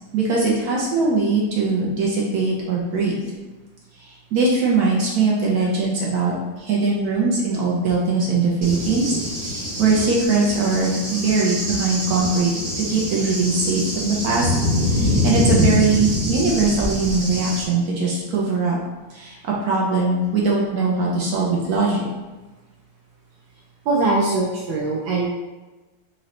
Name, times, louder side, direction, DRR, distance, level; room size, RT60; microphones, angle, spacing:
voice 1, 0.1-3.1 4.0-9.2 9.4-12.5 12.8-14.5 14.9-18.8 19.1-22.0, right 3 dB, 65° right, -4 dB, 1.1 m, -21 dB
Cricket / Thunder, 8.6-17.6, left 1 dB, 40° right, 0.9 m, -24 dB
voice 2, 23.9-25.3, right 3 dB, 85° right, -4 dB, 1.4 m, -21 dB
3.9 x 2.9 x 3.1 m, 1.2 s
omnidirectional pair, 2.1 m